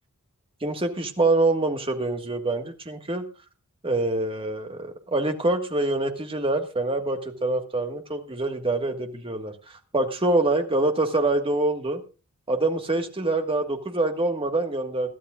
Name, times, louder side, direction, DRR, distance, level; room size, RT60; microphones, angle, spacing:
voice 1, 0.6-3.2 3.8-12.0 12.5-15.1, right 2 dB, 25° right, 5 dB, 1.6 m, -25 dB
21.5 x 13.0 x 2.4 m, 0.34 s
head